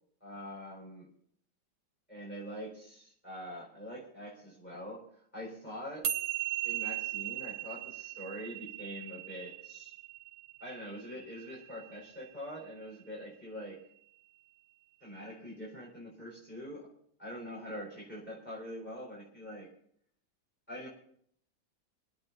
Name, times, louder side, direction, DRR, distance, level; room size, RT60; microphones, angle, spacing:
voice 1, 0.2-1.1 2.1-6.1 6.6-9.9 10.6-13.8 15.0-16.9 17.2-19.7 20.7-20.9, equal, 5° left, -5 dB, 4.4 m, -44 dB
sound 1, 6.0-12.6, right 12 dB, 75° right, 1.5 m, -38 dB
24.5 x 8.7 x 4.2 m, 0.65 s
omnidirectional pair, 2.1 m